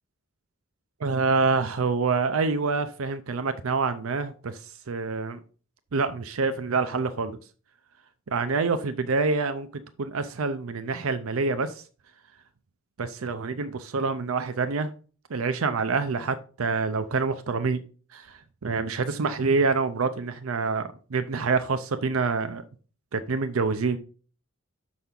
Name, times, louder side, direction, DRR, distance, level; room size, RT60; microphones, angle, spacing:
voice 1, 1.0-5.4 5.9-7.4 8.3-11.8 13.0-14.9 15.3-17.8 18.1-22.6 23.1-24.0, right 4 dB, 85° right, 0.6 m, -26 dB
6.8 x 6.1 x 3.7 m
head